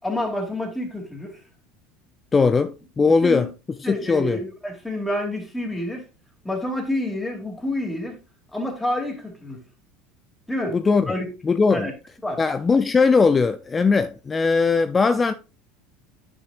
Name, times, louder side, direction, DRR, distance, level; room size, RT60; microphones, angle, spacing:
voice 1, 0.0-1.4 3.2-3.5 3.8-6.0 6.4-8.2 8.5-9.6 10.5-10.8 11.1-11.3 11.7-11.9 12.2-12.4, left 1 dB, 10° left, 2.7 m, -28 dB
voice 2, 2.3-3.5 3.9-4.4 10.7-11.1 11.4-11.9 12.4-15.3, left 4 dB, 25° left, 0.5 m, -19 dB
9.7 x 6.2 x 2.5 m
hypercardioid pair, 75°, 0 cm